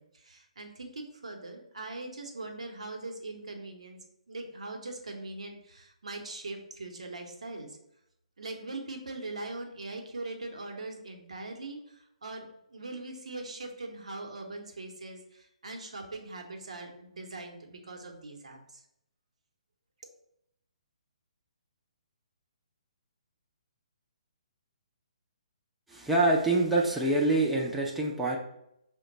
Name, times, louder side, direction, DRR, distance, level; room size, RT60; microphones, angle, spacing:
voice 1, 0.0-4.0 4.3-7.8 8.4-12.4 12.7-18.8, right 2 dB, 65° right, 3 dB, 0.9 m, -41 dB
voice 2, 25.9-28.4, right 2 dB, 5° right, -4 dB, 0.5 m, -25 dB
5.7 x 2.2 x 3.9 m, 0.78 s
figure-of-eight pair, 130°, 4 cm